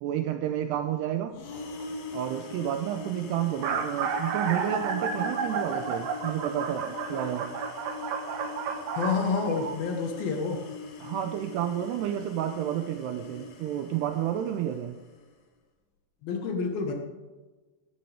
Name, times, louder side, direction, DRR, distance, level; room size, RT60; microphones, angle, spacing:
voice 1, 0.0-1.4 2.1-7.5 11.0-15.0, right 10 dB, 80° right, 8 dB, 2.5 m, -30 dB
sound 1, 1.3-15.2, left 3 dB, 85° left, 4.5 m, -42 dB
sound 2, 1.5-1.8 2.7-2.8 2.9-3.0 3.4-9.8, right 6 dB, 65° right, 2.3 m, -32 dB
voice 2, 9.0-10.6 16.2-16.9, left 4 dB, 65° left, 3 dB, 2.7 m, -28 dB
16.5 x 13.0 x 3.5 m, 1.3 s
omnidirectional pair, 5.4 m